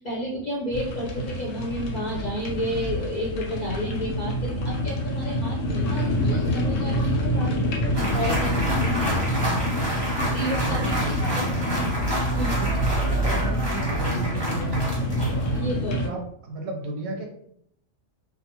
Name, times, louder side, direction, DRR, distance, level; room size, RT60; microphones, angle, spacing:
voice 1, 0.0-7.5 8.1-8.5 8.8-9.0 10.3-11.5 11.7-11.9 12.3-12.6 15.5-16.0, equal, 50° left, -4 dB, 0.5 m, -31 dB
sound 1, 0.7-16.1, equal, 85° left, 1.0 m, -26 dB
voice 2, 7.4-8.2 10.4-11.9 12.4-15.3 15.8-17.3, right 2 dB, 65° right, 1 dB, 0.8 m, -35 dB
sound 2, 7.9-15.6, right 1 dB, 25° right, 0.6 m, -30 dB
2.3 x 2.2 x 2.9 m, 0.68 s
omnidirectional pair, 1.3 m